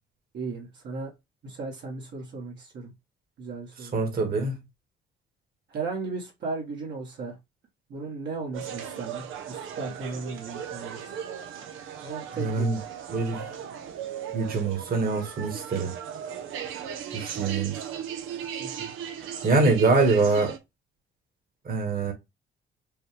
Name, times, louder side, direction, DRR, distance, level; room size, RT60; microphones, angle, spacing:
voice 1, 0.3-1.1 1.4-2.9 3.4-3.9 5.7-7.4 7.9-11.1 12.0-13.0 18.6-18.9, right 4 dB, 65° right, 1.6 m, -36 dB
voice 2, 3.8-4.5 12.4-12.8 13.1-13.4 14.3-16.0 17.1-17.8 19.4-20.6 21.6-22.1, right 3 dB, 50° right, 1.7 m, -24 dB
sound 1, 8.5-20.6, right 9 dB, 90° right, 0.8 m, -37 dB
5.4 x 2.3 x 3.3 m
cardioid pair, 90°, 20 cm